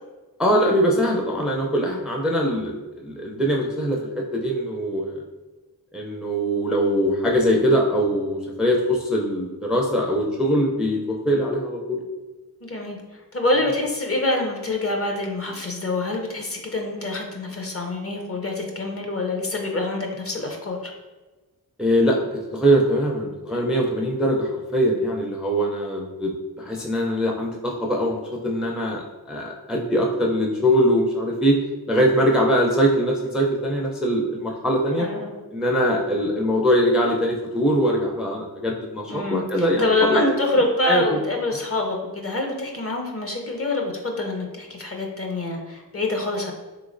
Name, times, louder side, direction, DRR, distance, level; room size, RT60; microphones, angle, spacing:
voice 1, 0.4-5.2 5.9-12.0 21.8-26.3 26.6-31.6 31.9-35.1 35.5-41.2, equal, ahead, 0 dB, 0.4 m, -22 dB
voice 2, 12.6-13.0 13.3-20.8 35.0-35.3 39.1-46.5, left 2 dB, 35° left, 2 dB, 0.6 m, -26 dB
3.3 x 3.0 x 2.5 m, 1.2 s
cardioid pair, 60°, 38 cm